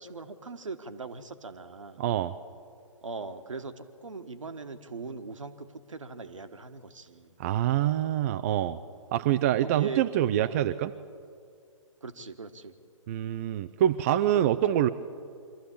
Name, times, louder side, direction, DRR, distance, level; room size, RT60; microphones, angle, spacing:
voice 1, 0.0-2.0 3.0-3.7 4.0-7.4 9.6-10.1 10.4-10.7 12.0-12.7 14.3-14.9, right 4 dB, 70° right, 8 dB, 1.5 m, -40 dB
voice 2, 2.0-2.3 7.4-8.8 9.1-10.9 13.1-14.9, right 11 dB, 25° right, 10 dB, 0.4 m, -25 dB
24.0 x 14.0 x 8.4 m, 2.3 s
figure-of-eight pair, 125°, 17 cm